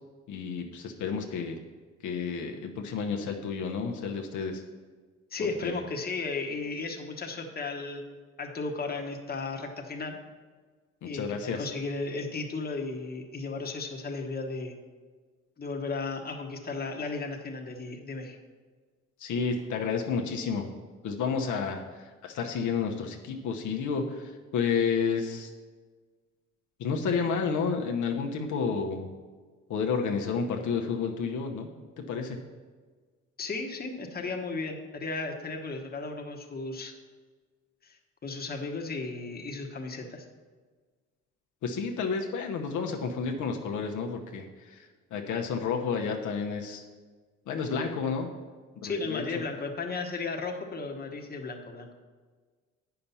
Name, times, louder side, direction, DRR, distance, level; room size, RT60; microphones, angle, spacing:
voice 1, 0.3-1.6 2.0-4.6 5.6-5.8 11.0-11.7 19.2-20.7 21.0-25.5 26.8-29.1 29.7-31.7 32.0-32.4 41.6-44.9 45.1-46.8 47.5-48.3 48.8-49.2, left 5 dB, 75° left, 2 dB, 0.9 m, -31 dB
voice 2, 5.3-8.0 8.4-10.2 11.0-14.7 15.6-18.4 33.4-36.9 37.8-40.3 48.8-51.9, left 3 dB, 30° left, 3 dB, 1.2 m, -35 dB
8.6 x 5.9 x 5.5 m, 1.4 s
cardioid pair, 90°, 30 cm